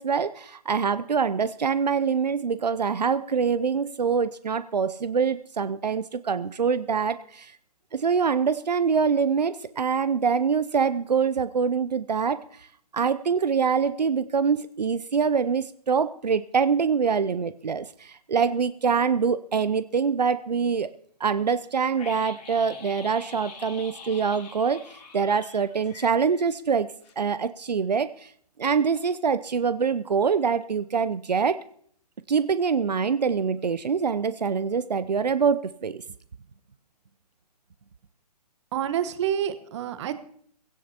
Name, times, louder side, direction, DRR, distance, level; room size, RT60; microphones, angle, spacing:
voice 1, 0.0-7.5 7.9-12.4 12.9-20.9 21.2-26.9 27.2-28.3 28.6-31.6 32.3-36.0, right 6 dB, 90° right, 14 dB, 0.6 m, -25 dB
sound 1, 21.9-26.8 27.0-27.1, left 4 dB, 75° left, 3.1 m, -45 dB
voice 2, 38.7-40.1, right 9 dB, 45° right, 12 dB, 1.2 m, -28 dB
20.0 x 16.5 x 2.9 m, 0.63 s
figure-of-eight pair, 135°, 21 cm